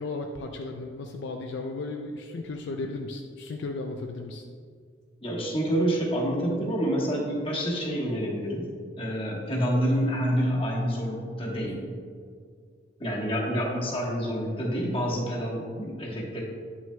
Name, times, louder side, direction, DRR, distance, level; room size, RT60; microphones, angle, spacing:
voice 1, 0.0-4.4, left 3 dB, 65° left, 3 dB, 0.4 m, -35 dB
voice 2, 5.2-8.7 9.0-11.8 13.0-16.4, equal, 30° left, -3 dB, 1.2 m, -28 dB
9.1 x 6.0 x 2.2 m, 2.1 s
head